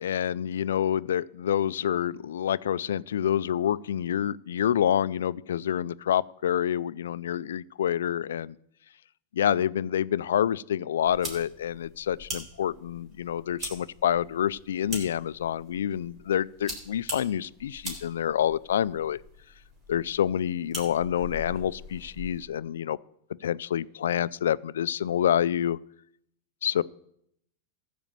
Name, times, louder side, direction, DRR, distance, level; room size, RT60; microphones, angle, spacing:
voice 1, 0.0-8.5 9.3-19.2 19.9-23.0 23.4-25.8 26.6-26.8, left 10 dB, 90° left, 19 dB, 0.3 m, -27 dB
sound 1, 11.1-22.5, equal, 25° right, 3.8 m, -42 dB
14.5 x 5.1 x 7.5 m, 0.73 s
supercardioid pair, 135°, 0 cm